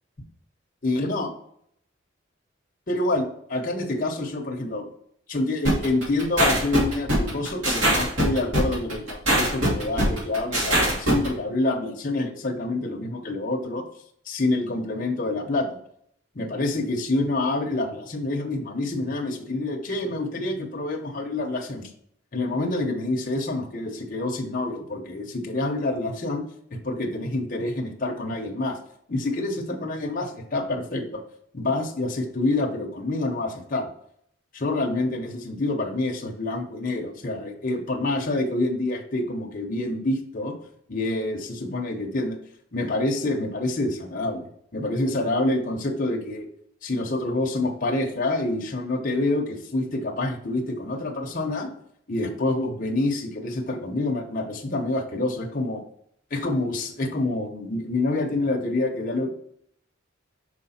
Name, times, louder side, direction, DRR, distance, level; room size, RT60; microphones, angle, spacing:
voice 1, 0.8-1.3 2.9-3.2 3.5-4.9 5.3-13.8 14.3-15.8 16.3-21.9 22.3-26.4 26.7-28.8 29.1-31.2 31.5-33.9 34.5-40.5 40.9-42.4 42.7-44.5 44.7-46.5 46.8-51.7 52.1-55.8 56.3-59.3, left 2 dB, 40° left, 1 dB, 0.8 m, -27 dB
sound 1, 5.6-11.3, right 1 dB, 65° right, 2.5 m, -22 dB
5.7 x 4.6 x 4.2 m, 0.68 s
head